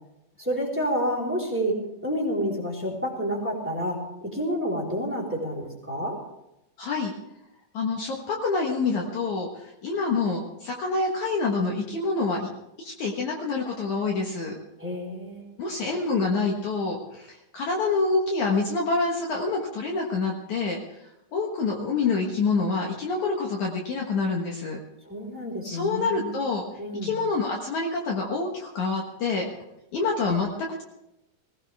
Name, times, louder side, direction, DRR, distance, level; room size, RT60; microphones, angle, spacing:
voice 1, 0.4-6.2 14.8-15.4 25.1-26.3 26.8-27.2, equal, 5° right, -4 dB, 3.7 m, -29 dB
voice 2, 6.8-7.1 7.7-12.5 12.8-14.5 15.6-20.8 21.3-24.8 25.6-26.6 27.0-29.5 29.9-30.8, left 4 dB, 60° left, 0 dB, 2.5 m, -27 dB
20.5 x 17.0 x 3.5 m, 0.88 s
omnidirectional pair, 4.3 m